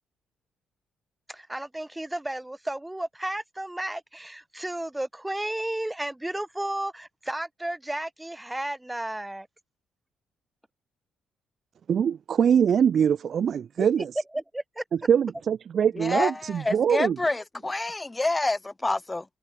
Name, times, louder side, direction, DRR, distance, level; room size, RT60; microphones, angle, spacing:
voice 1, 1.3-9.5 13.8-14.1 14.3-14.8, right 1 dB, 10° right, 3.2 m, -33 dB
voice 2, 11.9-14.1 14.9-17.2, right 8 dB, 55° right, 0.8 m, -23 dB
voice 3, 16.0-19.3, left 2 dB, 15° left, 2.3 m, -28 dB
cardioid pair, 90°, 0 cm